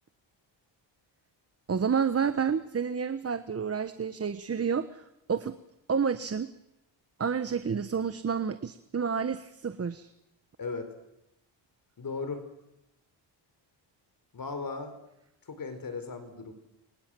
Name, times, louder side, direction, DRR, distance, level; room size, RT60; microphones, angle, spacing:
voice 1, 1.7-5.0 5.3-5.6 5.9-6.5 7.2-10.1, right 6 dB, 30° right, 12 dB, 1.2 m, -29 dB
voice 2, 10.6-10.9 12.0-12.4 14.3-15.0 15.5-16.5, left 4 dB, 45° left, 9 dB, 4.3 m, -36 dB
28.5 x 25.0 x 7.7 m, 0.86 s
cardioid pair, 100°, 47 cm